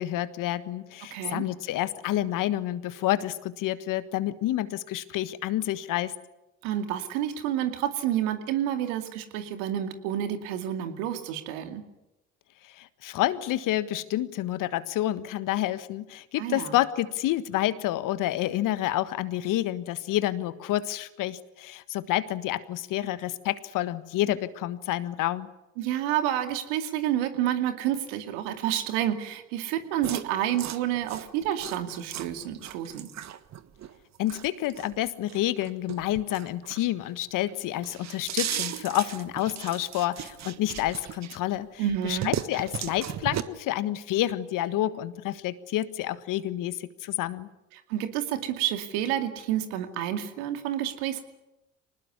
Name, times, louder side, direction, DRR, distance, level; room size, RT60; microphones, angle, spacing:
voice 1, 0.0-6.1 12.6-25.5 34.2-47.5, left 14 dB, 60° left, 14 dB, 1.5 m, -29 dB
voice 2, 1.1-1.5 6.6-11.8 16.4-16.8 25.8-33.1 41.8-42.3 47.7-51.2, right 11 dB, 70° right, 7 dB, 2.5 m, -29 dB
sound 1, 30.0-37.1 37.5-41.6 41.9-43.4, right 10 dB, 45° right, 1.5 m, -36 dB
24.5 x 19.5 x 9.7 m, 0.97 s
hypercardioid pair, 60°, 37 cm